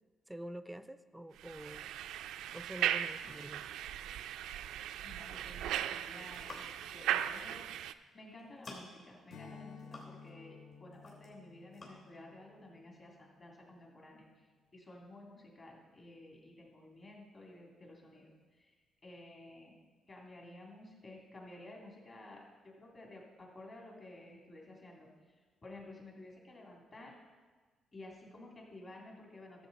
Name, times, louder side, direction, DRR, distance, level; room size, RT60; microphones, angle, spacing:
voice 1, 0.3-1.9 2.5-3.6, right 1 dB, 5° right, 12 dB, 0.4 m, -46 dB
sound 1, 1.4-7.9, right 11 dB, 90° right, 0.3 m, -38 dB
voice 2, 5.0-7.6 8.1-18.7 19.0-19.8 20.1-25.4 25.6-27.1 27.9-29.7, left 2 dB, 35° left, -1 dB, 2.8 m, -53 dB
sound 2, 6.3-6.9 7.9-8.1 8.4-9.1 9.5-10.4 10.7-11.4 11.7-11.9, left 2 dB, 55° left, 3.2 m, -51 dB
Strum, 9.3-14.1, left 5 dB, 70° left, 0.7 m, -55 dB
13.0 x 7.2 x 4.1 m, 1.4 s
cardioid pair, 90°, 0 cm